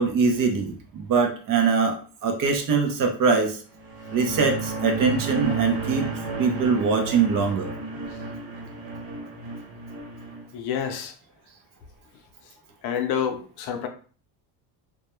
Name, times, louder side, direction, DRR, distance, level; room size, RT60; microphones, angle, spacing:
voice 1, 0.0-1.9 2.2-3.6 4.1-6.1 6.4-7.7, right 5 dB, 45° right, 0.6 m, -22 dB
sound 1, 3.8-10.4, right 4 dB, 70° right, 1.2 m, -33 dB
voice 2, 10.5-11.1 12.8-13.9, left 8 dB, 60° left, 0.6 m, -28 dB
2.2 x 2.2 x 2.9 m
cardioid pair, 135°, 45 cm